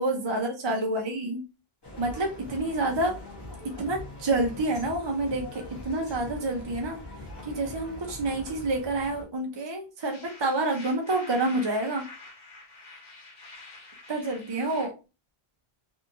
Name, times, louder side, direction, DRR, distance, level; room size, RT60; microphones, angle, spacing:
voice 1, 0.0-1.4 2.0-3.1 3.8-7.0 7.4-12.0 14.1-14.9, right 2 dB, 40° right, 1 dB, 0.4 m, -28 dB
sound 1, 1.8-9.2, left 2 dB, 25° left, 0.8 m, -42 dB
sound 2, 10.0-14.9, left 3 dB, 45° left, 1.2 m, -47 dB
2.7 x 2.4 x 2.5 m, 0.29 s
omnidirectional pair, 1.1 m